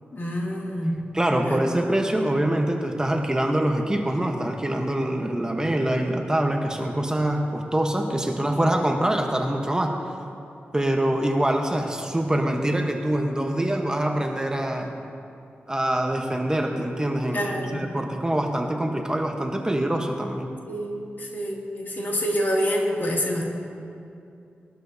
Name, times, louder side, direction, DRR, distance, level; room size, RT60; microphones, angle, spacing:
voice 1, 0.1-1.0 1.4-1.6 17.3-17.8 20.7-23.5, equal, 55° left, -2 dB, 2.5 m, -27 dB
voice 2, 1.1-10.0 10.7-15.0 15.7-20.5, right 1 dB, 15° right, 3 dB, 1.1 m, -24 dB
20.0 x 12.5 x 2.8 m, 2.6 s
cardioid pair, 70°, 4 cm